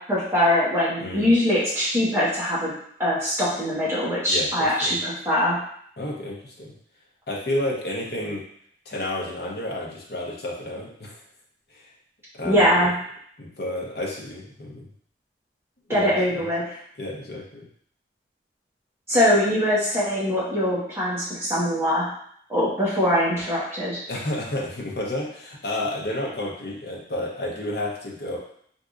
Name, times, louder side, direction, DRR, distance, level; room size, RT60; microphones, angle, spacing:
voice 1, 0.1-2.7 3.0-5.6 12.4-12.9 15.9-16.6 19.1-22.1 22.5-24.0, equal, 15° right, -9 dB, 1.1 m, -22 dB
voice 2, 1.0-1.3 4.3-4.9 6.0-6.7 7.3-8.4 8.9-11.2 11.7-11.8 12.3-12.9 13.4-14.9 15.9-16.5 17.0-17.7 24.1-28.4, left 1 dB, 60° left, -2 dB, 0.7 m, -31 dB
3.6 x 2.7 x 2.4 m, 0.64 s
head